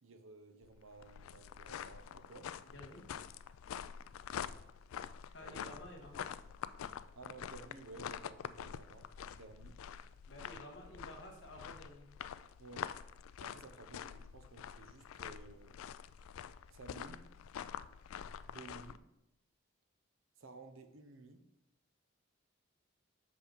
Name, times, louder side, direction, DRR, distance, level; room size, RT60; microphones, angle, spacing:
voice 1, 0.0-2.5 5.4-5.7 7.1-9.8 12.6-12.9 13.4-15.8 16.7-17.3 18.4-19.0 20.4-21.5, right 3 dB, 75° right, 8 dB, 0.9 m, -54 dB
sound 1, 0.6-19.0, left 8 dB, 85° left, 0.3 m, -47 dB
voice 2, 2.7-3.0 5.3-6.3 10.3-12.1, left 1 dB, 60° left, 2 dB, 1.5 m, -52 dB
6.4 x 5.2 x 5.1 m, 0.89 s
head